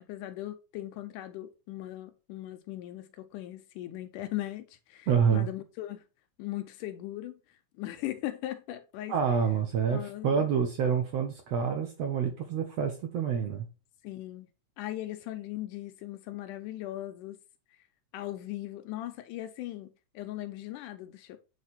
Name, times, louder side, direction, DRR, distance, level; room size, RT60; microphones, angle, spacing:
voice 1, 0.0-6.0 6.4-7.4 7.8-9.2 9.9-10.5 14.0-14.5 14.8-17.4 18.1-21.4, left 15 dB, 85° left, 2.2 m, -39 dB
voice 2, 5.1-5.5 9.1-13.6, right 7 dB, 70° right, 1.6 m, -27 dB
8.3 x 3.3 x 4.2 m
omnidirectional pair, 3.8 m